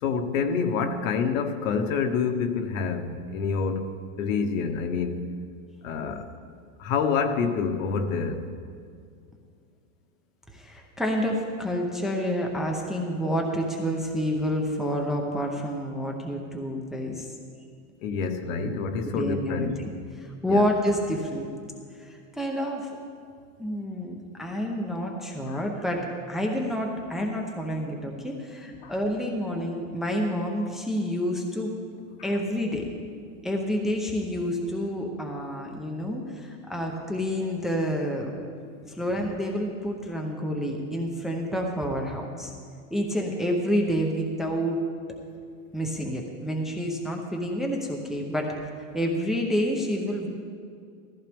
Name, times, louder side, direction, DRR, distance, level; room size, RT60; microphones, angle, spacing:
voice 1, 0.0-5.3 5.8-6.3 6.8-8.4 18.0-19.7 20.5-20.6 25.5-25.6 28.8-28.9, left 5 dB, 70° left, 6 dB, 1.3 m, -27 dB
voice 2, 10.5-17.3 19.1-19.7 20.1-21.5 21.9-22.9 23.6-31.7 32.2-32.9 33.4-38.4 38.8-42.5 42.9-44.8 45.7-48.5 48.9-50.3, equal, ahead, 0 dB, 0.7 m, -28 dB
15.0 x 14.5 x 3.5 m, 2.3 s
supercardioid pair, 165°, 41 cm